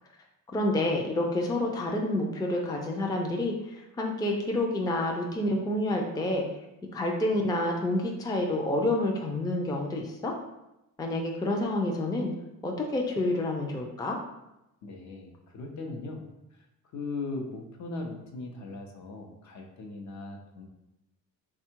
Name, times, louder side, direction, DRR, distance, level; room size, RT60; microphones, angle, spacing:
voice 1, 0.5-6.4 6.9-10.3 11.0-12.3 12.6-14.2, left 1 dB, 10° left, 0 dB, 0.4 m, -28 dB
voice 2, 14.8-16.2 16.5-16.7 16.9-20.7, left 3 dB, 55° left, 3 dB, 0.8 m, -39 dB
3.6 x 2.3 x 4.4 m, 0.92 s
cardioid pair, 115°, 34 cm